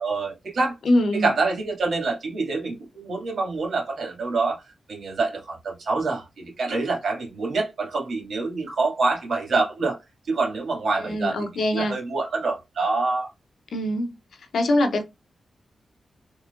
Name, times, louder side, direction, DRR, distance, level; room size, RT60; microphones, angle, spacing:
voice 1, 0.0-0.7 1.1-4.6 4.9-10.0 10.3-13.3, right 3 dB, 75° right, 2.2 m, -26 dB
voice 2, 0.8-1.3 11.0-12.0 13.7-14.1 14.5-15.0, left 1 dB, 75° left, 0.9 m, -23 dB
3.8 x 3.0 x 2.5 m
cardioid pair, 70°, 0 cm